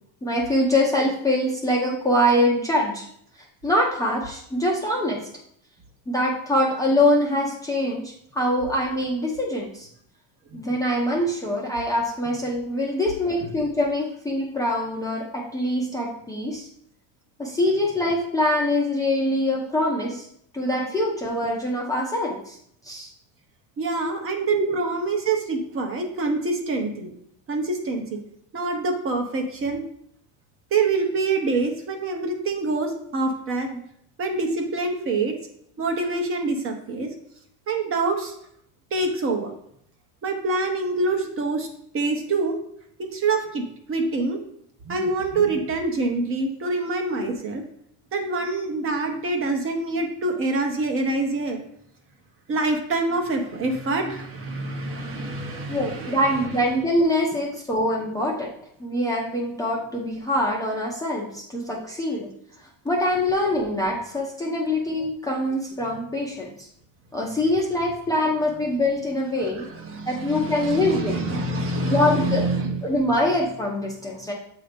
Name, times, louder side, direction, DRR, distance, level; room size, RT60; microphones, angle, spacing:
voice 1, 0.2-3.0 3.6-5.2 6.1-9.9 10.5-16.7 17.4-20.3 20.5-22.6 22.8-23.1 24.5-24.7 55.7-58.5 58.8-62.3 62.8-66.7 67.1-69.7 70.1-71.1 71.9-72.4 72.8-74.3, left 1 dB, 10° left, -3 dB, 0.6 m, -24 dB
voice 2, 23.8-27.1 27.5-28.2 28.5-29.8 30.7-33.7 34.2-35.4 35.8-37.1 37.7-38.3 38.9-39.5 40.2-41.7 41.9-42.6 43.0-44.4 44.8-47.6 48.1-51.6 52.5-56.5 65.9-66.0 69.6-72.8, right 3 dB, 30° right, 4 dB, 0.9 m, -26 dB
7.6 x 2.8 x 5.1 m, 0.69 s
cardioid pair, 150°, 42 cm